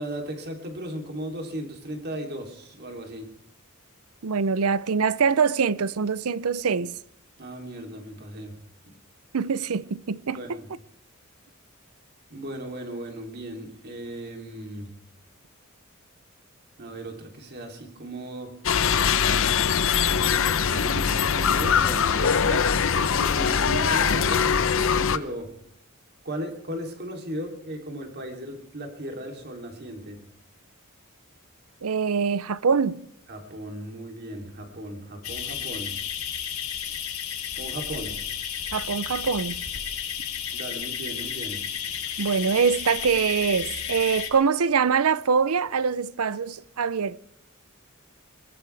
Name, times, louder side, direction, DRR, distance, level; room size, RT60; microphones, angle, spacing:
voice 1, 0.0-3.3 7.4-8.5 10.3-10.7 12.3-14.9 16.8-18.5 20.0-22.7 23.1-25.5 26.2-30.2 33.3-36.0 37.6-38.2 40.5-41.6, right 1 dB, 50° right, 3.2 m, -36 dB
voice 2, 4.2-7.0 9.3-10.6 31.8-33.0 38.7-39.6 42.2-47.2, right 6 dB, 90° right, 0.6 m, -24 dB
sound 1, 18.6-25.2, left 7 dB, 65° left, 0.8 m, -22 dB
sound 2, 35.2-44.3, left 8 dB, 85° left, 2.9 m, -32 dB
21.5 x 19.0 x 3.4 m
head